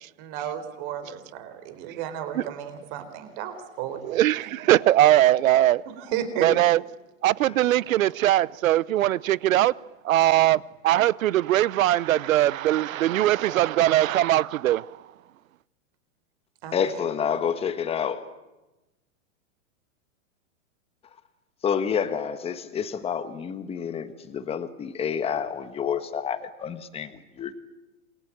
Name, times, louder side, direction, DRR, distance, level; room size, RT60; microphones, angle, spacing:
voice 1, 0.2-4.3 5.9-6.5 16.6-16.8, right 9 dB, 40° right, 4.2 m, -33 dB
voice 2, 4.1-5.8 6.4-6.8 7.2-9.7 10.0-14.8, right 14 dB, 85° right, 0.9 m, -21 dB
voice 3, 16.7-18.3 21.6-27.6, left 7 dB, 15° left, 1.5 m, -29 dB
28.0 x 22.5 x 8.8 m
supercardioid pair, 160°, 39 cm